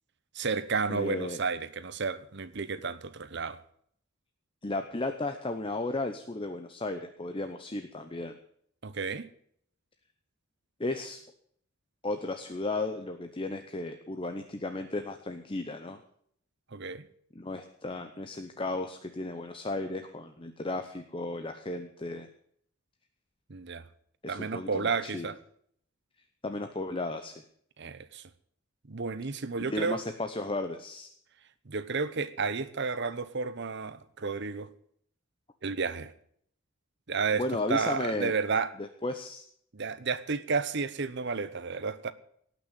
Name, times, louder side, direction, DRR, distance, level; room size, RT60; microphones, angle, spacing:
voice 1, 0.3-3.6 8.8-9.3 16.7-17.0 23.5-23.8 24.3-25.4 27.8-28.2 28.9-30.0 31.7-34.7 35.6-36.1 37.1-37.4 37.7-38.7 39.7-42.1, right 4 dB, 55° right, 0.9 m, -32 dB
voice 2, 0.9-1.4 4.6-8.3 10.8-11.2 12.0-16.0 17.3-22.3 24.2-25.3 26.4-27.4 29.7-31.1 37.4-38.3 38.8-39.4, left 2 dB, 25° left, 0.8 m, -34 dB
18.0 x 6.2 x 9.0 m
head